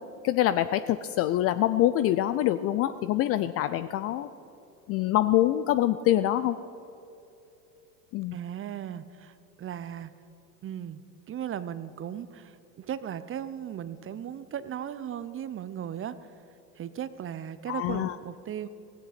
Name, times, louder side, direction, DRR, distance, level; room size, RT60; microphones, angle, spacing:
voice 1, 0.2-4.3 4.9-6.6 8.1-8.4 17.7-18.1, left 13 dB, 30° left, 13 dB, 0.4 m, -25 dB
voice 2, 8.3-10.1 10.6-16.2 16.7-18.7, right 9 dB, 25° right, 14 dB, 0.7 m, -37 dB
16.5 x 16.5 x 4.3 m, 2.9 s
hypercardioid pair, 80°, 49 cm